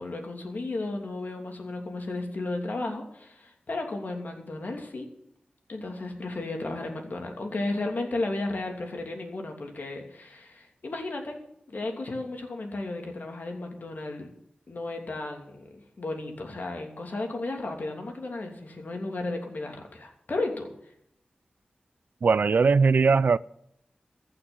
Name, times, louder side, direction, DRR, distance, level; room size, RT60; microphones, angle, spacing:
voice 1, 0.0-5.1 5.7-11.4 11.7-14.3 14.7-20.7, left 2 dB, 65° left, 2.8 m, -34 dB
voice 2, 22.2-23.4, right 4 dB, 70° right, 0.4 m, -20 dB
14.5 x 6.2 x 9.4 m
cardioid pair, 40°, 3 cm